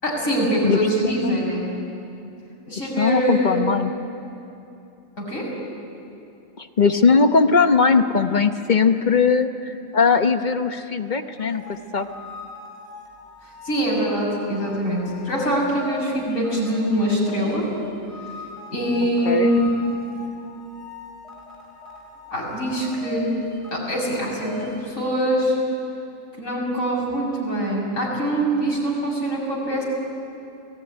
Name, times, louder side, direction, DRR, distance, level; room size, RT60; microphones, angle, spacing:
voice 1, 0.0-1.7 2.7-3.6 5.2-5.5 13.6-17.7 18.7-19.6 22.3-23.3 23.7-25.6 26.4-29.8, right 1 dB, 80° left, -3 dB, 6.9 m, -23 dB
voice 2, 3.0-3.9 6.6-11.6 11.9-12.1 19.3-19.5, left 5 dB, 40° left, 8 dB, 1.0 m, -19 dB
sound 1, 11.4-24.9, left 4 dB, 25° right, 5.0 m, -40 dB
28.0 x 18.5 x 9.8 m, 2.8 s
omnidirectional pair, 1.4 m